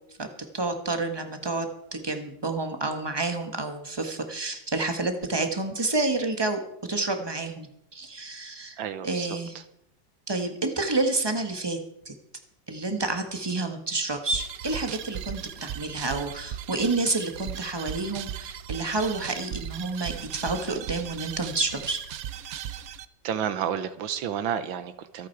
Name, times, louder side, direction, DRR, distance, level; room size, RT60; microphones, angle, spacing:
voice 1, 0.5-6.6 6.9-9.6 10.3-11.8 12.0-12.1 12.7-22.0, right 3 dB, 15° right, 6 dB, 1.3 m, -29 dB
voice 2, 8.8-9.4 23.2-25.3, right 9 dB, 85° right, 12 dB, 1.7 m, -30 dB
sound 1, 14.3-23.1, right 10 dB, 65° right, 0.9 m, -37 dB
25.5 x 8.5 x 4.7 m, 0.78 s
omnidirectional pair, 2.1 m